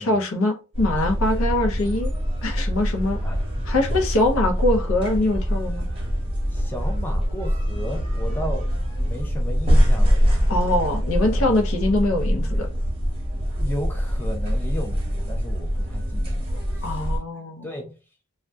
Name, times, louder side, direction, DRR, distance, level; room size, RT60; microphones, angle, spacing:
voice 1, 0.0-2.1 2.4-3.2 3.6-5.9 10.5-12.7 16.8-17.7, left 1 dB, 80° left, 0.6 m, -23 dB
sound 1, 0.7-17.2, equal, 25° right, 0.7 m, -24 dB
voice 2, 3.2-3.8 6.5-8.7 9.0-10.5 11.3-11.5 13.6-16.4 16.7-17.0 17.6-17.9, left 1 dB, 10° left, 0.4 m, -34 dB
2.6 x 2.1 x 2.2 m
head